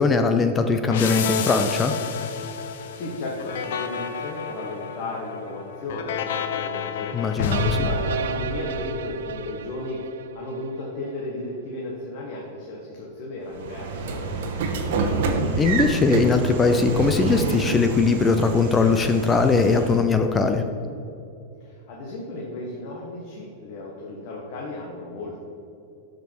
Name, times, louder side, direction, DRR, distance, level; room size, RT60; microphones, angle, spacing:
voice 1, 0.0-1.9 7.1-7.9 15.6-20.6, left 4 dB, 10° left, 7 dB, 0.3 m, -20 dB
sound 1, 0.9-9.4, left 6 dB, 60° left, 0.7 m, -30 dB
voice 2, 2.6-7.5 7.7-15.0 21.6-25.4, left 2 dB, 40° left, -3 dB, 1.3 m, -35 dB
sound 2, 7.5-10.8, right 9 dB, 80° right, 0.3 m, -32 dB
Train / Sliding door, 13.5-20.1, right 4 dB, 55° right, 1.1 m, -27 dB
13.0 x 5.3 x 4.6 m, 2.7 s
supercardioid pair, 175°, 0 cm